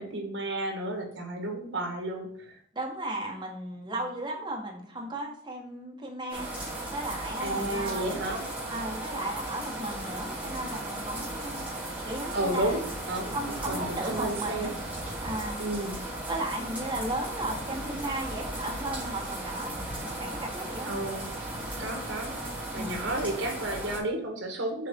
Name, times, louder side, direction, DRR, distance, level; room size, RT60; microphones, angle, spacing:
voice 1, 0.0-2.5 7.4-8.5 12.3-14.7 15.6-16.0 20.8-21.3 21.8-22.4 22.7-24.9, right 1 dB, 65° right, 3 dB, 1.6 m, -32 dB
voice 2, 2.7-6.5 6.9-8.4 8.7-11.7 12.1-12.8 13.3-14.7 15.2-15.6 16.2-19.7 20.2-20.9 22.7-23.1, right 1 dB, 25° right, 0 dB, 1.4 m, -35 dB
sound 1, 6.3-24.0, right 1 dB, 5° right, 2.7 m, -36 dB
7.4 x 4.3 x 3.7 m, 0.66 s
head